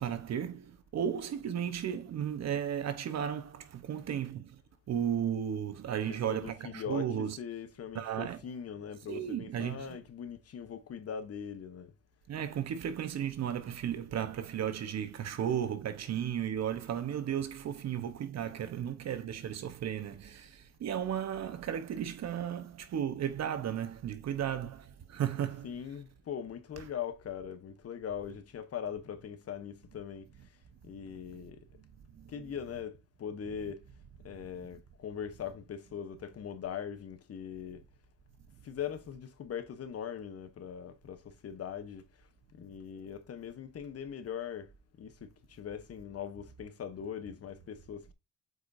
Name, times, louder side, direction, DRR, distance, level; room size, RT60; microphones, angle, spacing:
voice 1, 0.0-4.6 4.9-7.4 7.9-8.4 9.1-9.9 12.3-25.7 32.2-32.3, right 9 dB, 60° right, 1.0 m, -34 dB
voice 2, 6.1-11.9 25.6-30.5 30.8-31.6 32.3-33.9 34.2-37.8 38.6-48.1, left 8 dB, 50° left, 1.1 m, -41 dB
7.9 x 4.9 x 2.7 m
cardioid pair, 90°, 30 cm